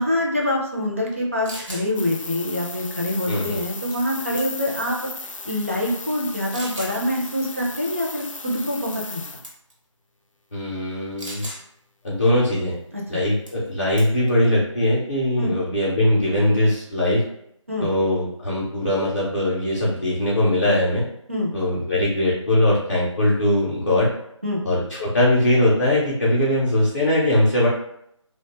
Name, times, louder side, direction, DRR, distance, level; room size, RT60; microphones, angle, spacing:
voice 1, 0.0-5.0 5.4-9.2 12.9-13.2 15.4-15.5 17.7-17.9 21.3-21.5 24.4-24.6, left 1 dB, 25° right, -3 dB, 0.4 m, -25 dB
sound 1, 1.1-1.2 1.4-1.9 3.9-4.1 4.4-4.8 5.5-5.6 6.5-7.0 8.9-9.2 9.4-9.7 11.2-11.6 13.5-13.7 14.0-14.3, right 1 dB, 75° right, 1.0 m, -36 dB
sound 2, 1.9-9.4, left 3 dB, 80° left, 0.4 m, -36 dB
voice 2, 3.3-3.6 10.5-11.5 12.0-12.7 13.1-17.2 17.8-21.0 21.5-24.1 24.6-27.7, left 1 dB, 35° left, -7 dB, 0.5 m, -21 dB
2.4 x 2.1 x 2.9 m, 0.75 s
figure-of-eight pair, 160°, 16 cm